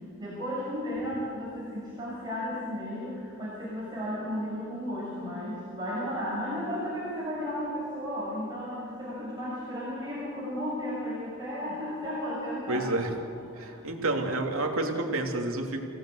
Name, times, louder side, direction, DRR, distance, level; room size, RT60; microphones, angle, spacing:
voice 1, 0.2-12.8 13.5-13.7, equal, 20° right, -8 dB, 6.6 m, -34 dB
voice 2, 12.7-13.1 13.6-15.8, right 2 dB, 80° right, 2 dB, 2.8 m, -29 dB
29.0 x 17.0 x 8.0 m, 2.4 s
head